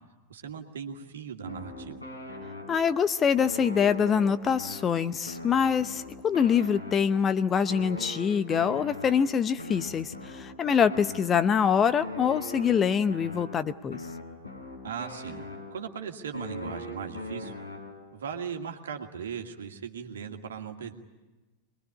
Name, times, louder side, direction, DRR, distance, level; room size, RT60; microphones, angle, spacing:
voice 1, 0.3-2.0 14.8-17.5 18.1-20.9, right 7 dB, 65° right, 4 dB, 2.2 m, -38 dB
sound 1, 1.5-3.0 3.4-7.3 7.7-11.6 12.0-16.0 16.3-18.2, left 2 dB, 85° left, 4.1 m, -41 dB
voice 2, 2.7-14.0, left 7 dB, 25° left, 13 dB, 0.8 m, -25 dB
23.5 x 21.0 x 9.7 m, 1.2 s
figure-of-eight pair, 90°, 0 cm